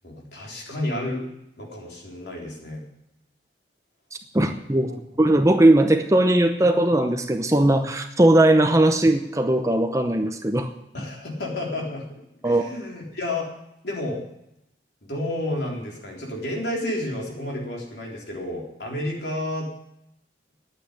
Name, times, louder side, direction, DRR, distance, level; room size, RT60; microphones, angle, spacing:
voice 1, 0.0-1.2 1.6-2.8 4.8-5.0 10.9-12.1 12.4-13.5 13.8-14.2 15.0-19.7, left 1 dB, 65° left, -1 dB, 3.7 m, -31 dB
voice 2, 4.3-4.9 5.2-10.7 12.4-12.7, right 1 dB, 15° right, 7 dB, 0.7 m, -19 dB
10.5 x 9.1 x 9.8 m, 0.83 s
head